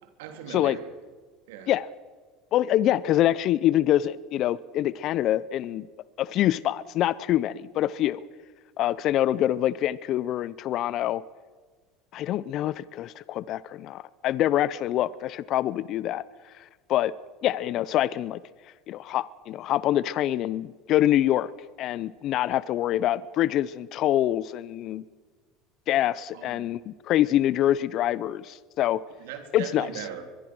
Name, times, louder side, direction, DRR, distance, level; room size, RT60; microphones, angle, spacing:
voice 1, 0.0-0.9 1.5-1.7 26.3-26.7 29.2-30.3, right 8 dB, 80° right, 7 dB, 3.2 m, -39 dB
voice 2, 2.5-5.9 6.2-8.2 8.8-11.2 12.1-17.1 17.4-18.4 18.9-21.5 21.8-25.0 25.9-29.0 29.5-29.9, left 12 dB, 55° left, 19 dB, 0.6 m, -25 dB
24.0 x 22.5 x 6.2 m, 1.5 s
hypercardioid pair, 85°, 0 cm